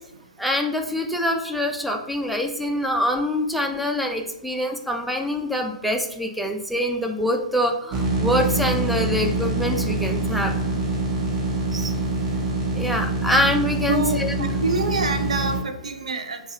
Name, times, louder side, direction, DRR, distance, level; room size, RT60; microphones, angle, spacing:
voice 1, 0.4-10.5 12.7-14.5, left 1 dB, ahead, 3 dB, 0.4 m, -25 dB
sound 1, 7.9-15.6, right 2 dB, 25° right, 0.9 m, -25 dB
voice 2, 13.9-16.4, right 3 dB, 70° right, 7 dB, 0.5 m, -26 dB
5.3 x 2.4 x 2.7 m, 0.82 s
figure-of-eight pair, 110°, 4 cm